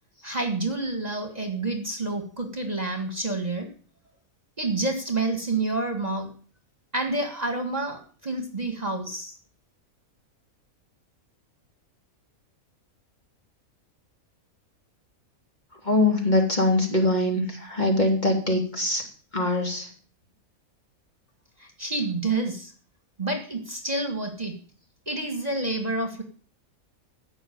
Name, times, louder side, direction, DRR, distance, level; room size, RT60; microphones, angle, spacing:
voice 1, 0.2-3.7 4.6-6.3 6.9-9.3 21.6-22.7 23.2-24.6 25.1-26.2, right 2 dB, 30° right, 5 dB, 1.9 m, -28 dB
voice 2, 15.8-19.0 19.3-19.9, left 2 dB, 30° left, 1 dB, 3.2 m, -23 dB
15.0 x 6.0 x 9.3 m, 0.42 s
omnidirectional pair, 1.5 m